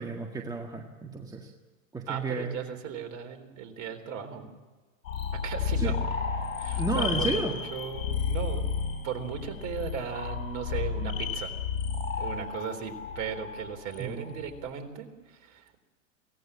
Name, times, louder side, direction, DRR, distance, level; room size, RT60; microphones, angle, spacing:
voice 1, 0.0-1.5 1.9-2.5 5.8-5.9 6.8-7.5 14.0-14.3, right 3 dB, 10° right, 1 dB, 1.8 m, -32 dB
voice 2, 2.1-4.5 5.4-5.9 6.5-8.7 9.0-11.5 12.2-15.8, right 7 dB, 45° right, 5 dB, 3.9 m, -37 dB
sound 1, 5.0-14.7, left 6 dB, 70° left, 5.0 m, -32 dB
24.0 x 17.5 x 8.8 m, 1.3 s
hypercardioid pair, 115°, 42 cm